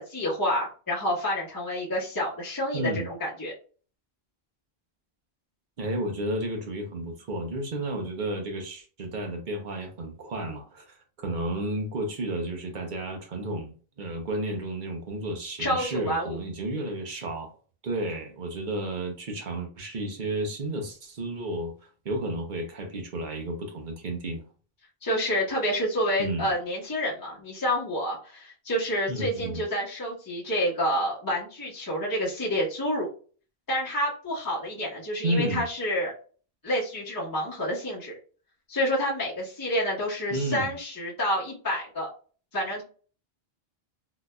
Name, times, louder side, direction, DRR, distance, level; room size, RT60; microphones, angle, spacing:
voice 1, 0.0-3.5 15.6-16.4 25.0-33.1 33.7-36.1 36.6-38.1 38.7-42.1 42.5-42.8, equal, 20° left, -7 dB, 1.2 m, -28 dB
voice 2, 2.7-3.1 5.8-17.5 17.8-24.4 26.2-26.5 29.1-29.6 35.2-35.6 40.3-40.7, right 1 dB, 50° right, 3 dB, 0.9 m, -32 dB
4.0 x 2.6 x 2.3 m, 0.39 s
omnidirectional pair, 1.1 m